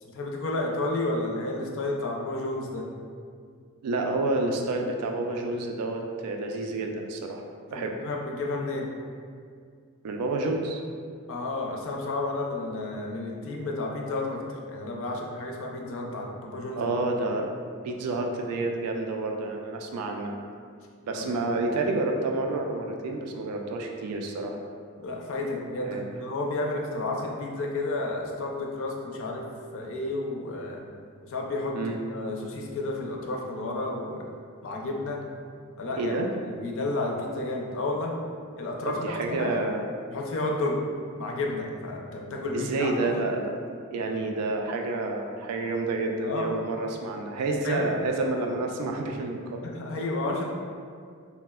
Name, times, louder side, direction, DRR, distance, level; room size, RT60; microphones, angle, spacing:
voice 1, 0.0-2.9 7.7-8.9 11.3-16.9 21.1-21.3 25.0-29.5 29.7-30.8 31.2-31.8 32.1-34.3 34.6-35.2 35.8-36.2 36.4-38.2 38.6-39.6 40.1-40.8 41.2-43.2 46.2-46.6 47.4-47.9 49.7-50.4, left 2 dB, 60° left, 0 dB, 0.4 m, -31 dB
voice 2, 3.8-7.5 7.7-7.9 10.0-10.8 16.8-17.6 17.8-20.3 21.0-24.6 25.8-26.0 31.7-32.0 36.0-36.3 38.9-39.8 42.5-43.6 43.9-49.6, right 2 dB, 85° right, 2 dB, 0.3 m, -29 dB
4.2 x 2.0 x 2.2 m, 2.2 s
head